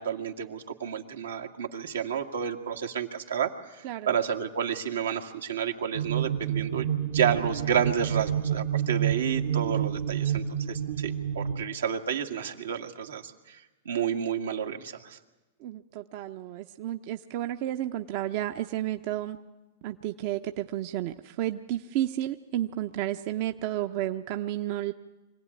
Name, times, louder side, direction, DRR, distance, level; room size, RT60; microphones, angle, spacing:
voice 1, 0.0-15.2, right 8 dB, 90° right, 3 dB, 2.0 m, -31 dB
voice 2, 3.8-4.2 15.6-19.4 19.8-24.9, right 13 dB, 55° right, 7 dB, 0.8 m, -32 dB
sound 1, 5.9-11.6, right 9 dB, 70° right, 1.4 m, -29 dB
25.0 x 16.5 x 9.8 m, 1.1 s
hypercardioid pair, 120°, 0 cm